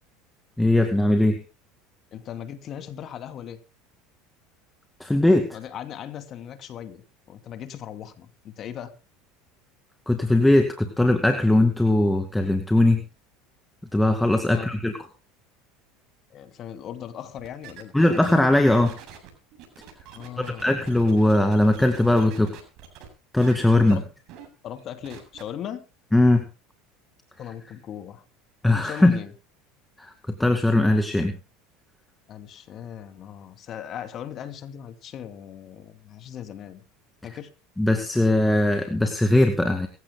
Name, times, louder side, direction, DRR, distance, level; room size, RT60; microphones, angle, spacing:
voice 1, 0.6-1.4 5.0-5.5 10.1-13.0 13.9-14.9 17.9-19.0 20.4-22.5 23.3-24.0 26.1-26.5 28.6-29.2 30.0-31.3 37.8-39.9, left 1 dB, 5° left, 4 dB, 2.2 m, -20 dB
voice 2, 2.1-3.6 5.5-8.9 14.5-14.7 16.3-17.9 20.1-20.7 23.9-24.1 24.6-25.9 27.4-28.2 28.7-29.3 32.3-36.8 37.2-37.5, left 9 dB, 45° left, 8 dB, 2.7 m, -38 dB
sound 1, 17.4-23.1 23.4-23.9 24.3-24.5 24.8-25.4, right 8 dB, 60° right, 7.7 m, -45 dB
23.5 x 15.5 x 2.2 m, 0.32 s
supercardioid pair, 115°, 0 cm